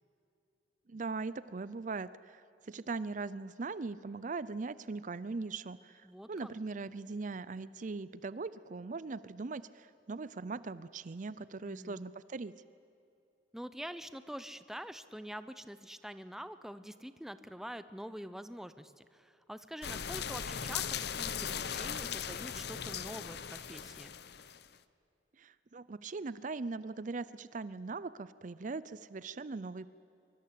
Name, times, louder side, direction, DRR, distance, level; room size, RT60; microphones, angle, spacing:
voice 1, 0.9-12.5 25.4-29.9, right 3 dB, 45° right, 16 dB, 0.5 m, -40 dB
voice 2, 6.0-6.5 11.6-12.0 13.5-24.1, equal, ahead, 12 dB, 0.7 m, -46 dB
sound 1, 19.8-24.7, left 8 dB, 60° left, 0.8 m, -38 dB
24.0 x 23.5 x 8.4 m, 2.7 s
head